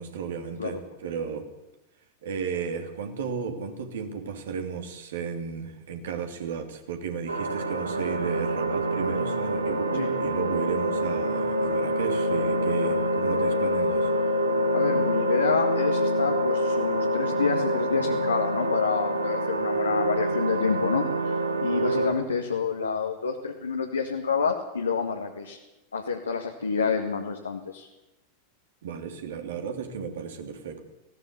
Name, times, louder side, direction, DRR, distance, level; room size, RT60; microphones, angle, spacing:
voice 1, 0.0-1.5 2.2-14.2 28.8-30.8, right 6 dB, 60° right, 6 dB, 3.1 m, -34 dB
sound 1, 7.3-22.1, equal, 75° right, 2.0 m, -26 dB
voice 2, 14.7-25.6 25.9-27.9, left 5 dB, 75° left, 2 dB, 1.9 m, -28 dB
19.0 x 16.5 x 8.4 m, 0.99 s
figure-of-eight pair, 90°, 0 cm